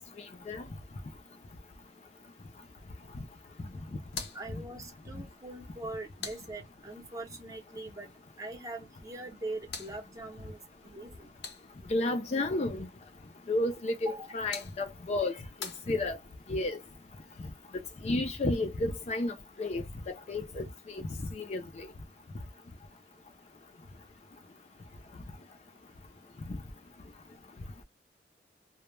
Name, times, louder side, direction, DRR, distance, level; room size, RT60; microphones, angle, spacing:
voice 1, 0.2-0.6 11.9-12.9 13.5-16.2 16.5-16.8 18.0-21.9 26.5-26.6, left 2 dB, 40° left, 0.4 m, -32 dB
sound 1, 4.0-7.1 9.1-12.0 14.0-16.5, left 5 dB, 80° left, 0.7 m, -47 dB
voice 2, 4.3-8.1 8.4-11.3 14.0-14.3, right 2 dB, 20° right, 0.7 m, -42 dB
2.2 x 2.1 x 3.0 m
head